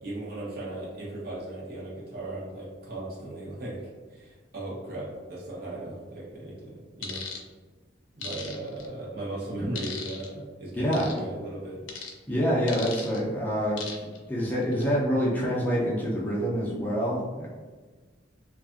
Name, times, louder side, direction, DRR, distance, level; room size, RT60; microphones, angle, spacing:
voice 1, 0.0-7.2 8.1-11.8, right 1 dB, 55° right, -5 dB, 0.8 m, -37 dB
sound 1, 7.0-7.4 8.2-8.9 9.8-10.3 10.9-11.2 11.9-12.1 12.7-13.2 13.8-14.2 14.6-14.8, left 5 dB, 90° left, 0.4 m, -37 dB
voice 2, 10.8-11.1 12.3-14.0 14.3-17.5, equal, 10° left, -6 dB, 0.4 m, -26 dB
2.6 x 2.4 x 2.4 m, 1.4 s
head